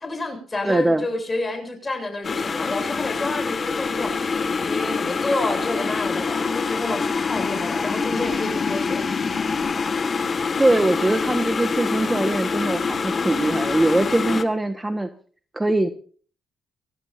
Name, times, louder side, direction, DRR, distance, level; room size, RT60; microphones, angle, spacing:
voice 1, 0.0-9.0, left 2 dB, 25° left, 6 dB, 7.6 m, -29 dB
voice 2, 0.6-1.0 10.6-15.1 15.5-15.9, right 2 dB, 15° right, 8 dB, 1.4 m, -21 dB
sound 1, 2.2-14.4, left 5 dB, 40° left, 1.9 m, -25 dB
23.5 x 17.5 x 2.7 m, 0.43 s
cardioid pair, 90°, 0 cm